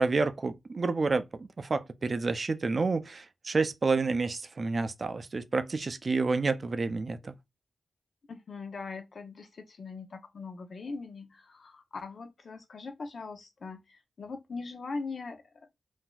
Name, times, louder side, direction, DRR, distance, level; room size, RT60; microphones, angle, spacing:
voice 1, 0.0-7.4, right 3 dB, 45° right, 0.4 m, -29 dB
voice 2, 8.3-15.4, left 4 dB, 65° left, 0.7 m, -41 dB
3.8 x 2.6 x 2.3 m
wide cardioid pair, 85°, 0 cm